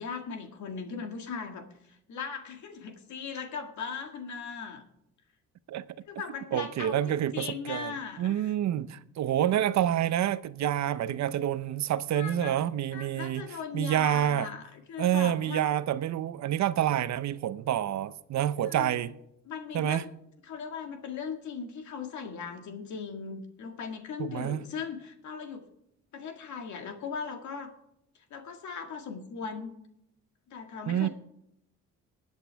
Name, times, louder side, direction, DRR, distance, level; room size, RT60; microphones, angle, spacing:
voice 1, 0.0-1.7 2.1-4.8 6.1-8.5 12.1-12.6 12.9-15.7 18.6-19.0 19.5-20.1 20.5-25.6 26.1-27.7 28.3-29.7 30.5-31.1, left 6 dB, 70° left, 2.0 m, -38 dB
voice 2, 6.5-13.5 13.7-14.5 15.0-19.2 19.7-20.1 24.2-24.7 30.9-31.1, right 11 dB, 65° right, 0.7 m, -28 dB
20.0 x 8.3 x 3.5 m
cardioid pair, 90°, 30 cm